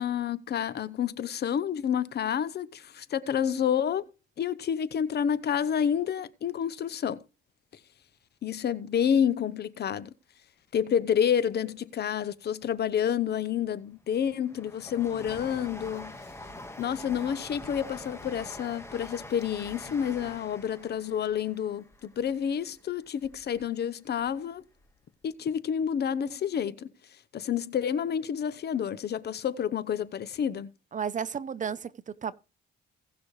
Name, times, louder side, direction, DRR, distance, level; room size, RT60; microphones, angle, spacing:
voice 1, 0.0-4.1 4.4-7.2 8.4-10.1 10.7-16.1 16.8-24.6 25.2-26.9 27.3-30.7, left 8 dB, 55° left, 0.8 m, -29 dB
Train, 13.5-23.6 24.1-25.0 25.2-25.3, left 2 dB, 15° left, 1.5 m, -45 dB
voice 2, 30.9-32.3, right 7 dB, 40° right, 0.7 m, -33 dB
18.0 x 6.1 x 3.2 m
cardioid pair, 90°, 20 cm